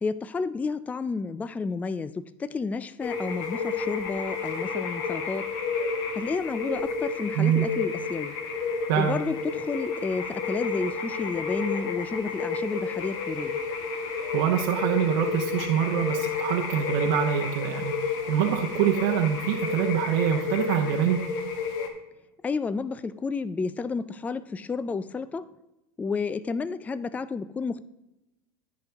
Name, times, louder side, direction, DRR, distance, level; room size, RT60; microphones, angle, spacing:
voice 1, 0.0-5.5 6.2-8.4 9.0-13.6 22.4-25.5 26.0-27.8, left 4 dB, 15° left, 16 dB, 0.3 m, -31 dB
sound 1, 3.0-21.9, left 4 dB, 65° left, 1.5 m, -31 dB
voice 2, 7.3-7.7 8.9-9.2 14.3-21.2, right 9 dB, 70° right, 1 dB, 0.9 m, -25 dB
14.5 x 5.2 x 3.5 m, 0.97 s
supercardioid pair, 105°, 11 cm